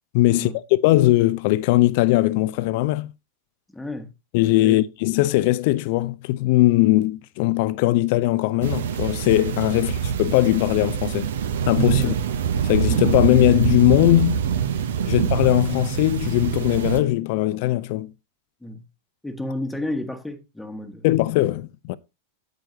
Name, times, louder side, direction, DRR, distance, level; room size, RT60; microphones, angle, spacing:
voice 1, 0.1-3.1 4.3-11.3 11.7-12.1 12.6-14.5 15.1-18.1 21.0-21.9, left 17 dB, 50° left, 0.5 m, -20 dB
voice 2, 3.7-4.1 4.6-4.8 12.0-12.1 18.6-18.8 19.2-21.0, left 1 dB, 5° left, 1.3 m, -31 dB
sound 1, 8.6-17.0, right 8 dB, 60° right, 0.9 m, -24 dB
9.1 x 8.9 x 2.8 m
figure-of-eight pair, 90°, 0 cm